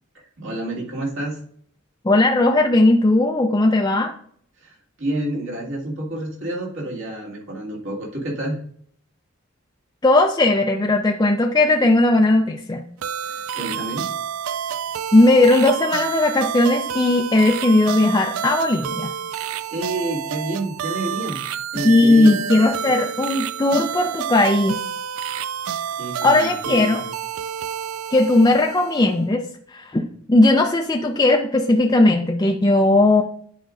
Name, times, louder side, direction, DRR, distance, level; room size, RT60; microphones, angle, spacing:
voice 1, 0.1-1.4 4.6-8.6 13.3-14.1 19.7-22.3 26.0-27.0, right 1 dB, 65° right, -3 dB, 2.1 m, -29 dB
voice 2, 2.0-4.1 10.0-12.8 15.1-19.1 21.8-24.8 26.2-27.0 28.1-29.4 29.7-33.2, left 2 dB, 20° left, 1 dB, 0.4 m, -17 dB
sound 1, 13.0-29.2, right 8 dB, 85° right, 0.4 m, -29 dB
10.5 x 5.1 x 2.5 m, 0.63 s
head